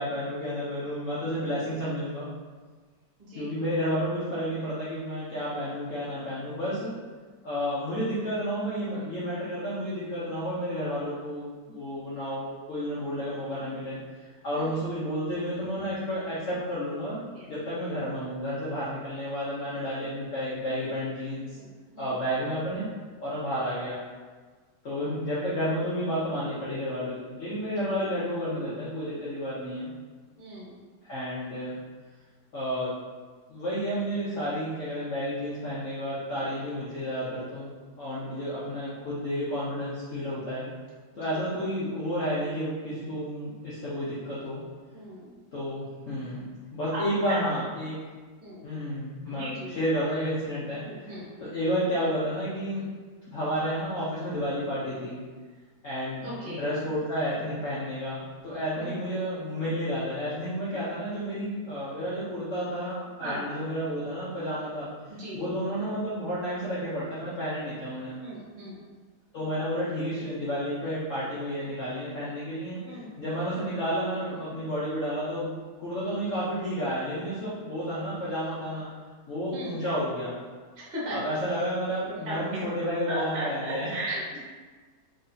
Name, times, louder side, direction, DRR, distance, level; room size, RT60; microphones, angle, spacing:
voice 1, 0.0-2.3 3.4-6.9 7.4-17.2 17.5-21.6 22.0-22.9 23.2-24.0 24.8-29.9 31.0-31.8 32.5-32.9 33.5-37.7 38.0-40.7 41.1-44.6 45.5-47.9 48.6-49.5 49.8-52.9 53.3-55.2 55.8-64.9 65.3-68.2 69.3-75.5 75.8-78.9 79.3-80.4 81.1-83.9, equal, 55° left, -9 dB, 1.0 m, -31 dB
voice 2, 3.2-3.5 14.5-14.8 17.3-17.5 21.4-21.7 21.9-22.1 27.6-28.1 30.4-30.8 41.3-41.4 44.9-45.3 46.9-47.4 48.4-48.7 49.3-49.7 50.8-51.5 56.2-56.6 58.8-59.0 63.2-63.4 65.1-65.4 68.2-68.8 72.8-73.1 79.5-79.7 80.8-81.2 82.0-82.6 83.1-84.4, right 1 dB, 35° right, -7 dB, 1.2 m, -37 dB
3.2 x 2.7 x 3.8 m, 1.4 s
omnidirectional pair, 1.9 m